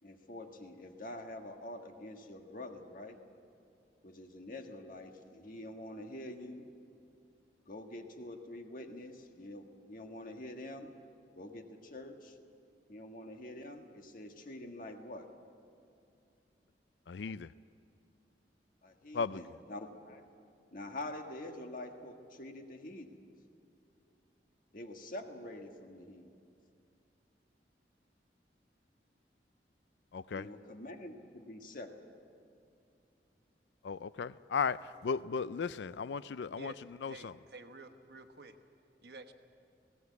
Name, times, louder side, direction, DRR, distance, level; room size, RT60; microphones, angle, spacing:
voice 1, 0.0-3.2 4.0-6.7 7.7-10.9 11.3-12.4 12.9-15.3 18.8-20.2 20.7-23.2 24.7-26.3 30.3-32.1, left 1 dB, 50° left, 5 dB, 1.6 m, -46 dB
voice 2, 17.1-17.5 19.1-19.4 30.1-30.5 33.8-36.7 37.0-37.3, left 5 dB, 80° left, 17 dB, 0.4 m, -36 dB
voice 3, 37.1-38.6 39.0-39.3, right 3 dB, 60° right, 7 dB, 1.2 m, -50 dB
19.0 x 17.0 x 8.3 m, 2.6 s
head